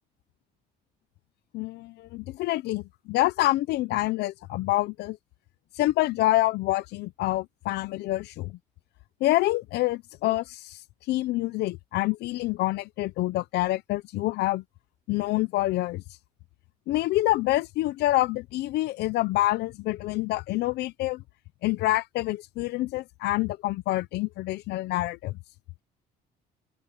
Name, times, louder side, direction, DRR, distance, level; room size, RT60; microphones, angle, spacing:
voice 1, 1.5-5.2 5.8-8.6 9.2-10.8 11.1-14.6 15.1-16.0 16.9-21.2 21.6-25.4, left 17 dB, 80° left, 0.7 m, -27 dB
open air
cardioid pair, 110°, 17 cm